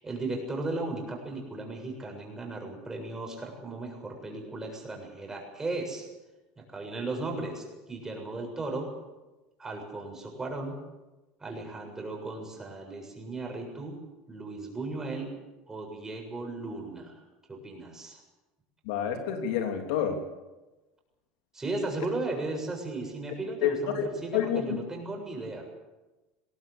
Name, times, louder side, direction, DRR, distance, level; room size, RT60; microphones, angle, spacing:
voice 1, 0.0-6.1 6.6-8.9 9.6-10.8 11.4-13.9 14.3-15.3 15.7-17.2 17.5-18.2 21.5-25.6, right 2 dB, 15° right, 2 dB, 7.2 m, -36 dB
voice 2, 18.8-20.2 23.6-24.1 24.3-24.8, left 8 dB, 80° left, 5 dB, 3.0 m, -28 dB
21.5 x 17.5 x 8.5 m, 1.1 s
supercardioid pair, 115°, 3 cm